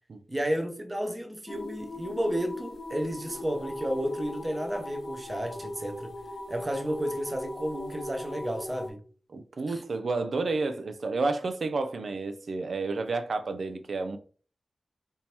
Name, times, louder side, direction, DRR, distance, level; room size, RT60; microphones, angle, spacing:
voice 1, 0.3-6.1 6.5-9.0 9.7-9.8, equal, 30° right, 0.8 m, -32 dB
sound 1, 1.5-8.9, left 1 dB, 50° left, 0.7 m, -39 dB
voice 2, 9.3-14.2, right 3 dB, 75° right, 0.4 m, -30 dB
3.5 x 2.7 x 2.9 m
cardioid pair, 50°, 0 cm